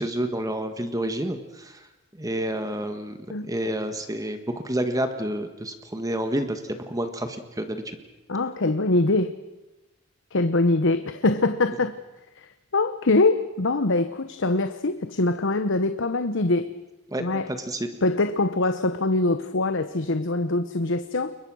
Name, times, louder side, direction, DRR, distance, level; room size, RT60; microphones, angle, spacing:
voice 1, 0.0-1.9 2.2-3.2 3.4-8.0 17.1-17.4 17.7-17.9, right 1 dB, 15° right, 7 dB, 1.6 m, -29 dB
voice 2, 8.3-9.4 10.3-12.0 12.4-16.7 17.2-17.5 18.0-21.4, left 2 dB, 65° left, 10 dB, 1.0 m, -23 dB
29.5 x 22.5 x 6.4 m, 1.0 s
head